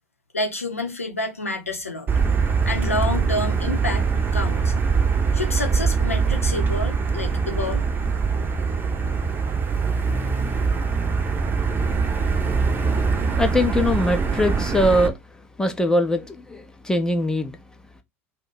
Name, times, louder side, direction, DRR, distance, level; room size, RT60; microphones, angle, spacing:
voice 1, 0.3-2.1 2.6-4.0 4.3-4.7 5.3-7.9, left 2 dB, 90° left, 0.6 m, -28 dB
Motor vehicle (road), 2.1-15.1, right 5 dB, 30° right, 0.7 m, -23 dB
voice 2, 13.4-15.2 15.6-17.6, left 1 dB, 10° left, 0.5 m, -22 dB
2.6 x 2.2 x 3.9 m
figure-of-eight pair, 70°, 7 cm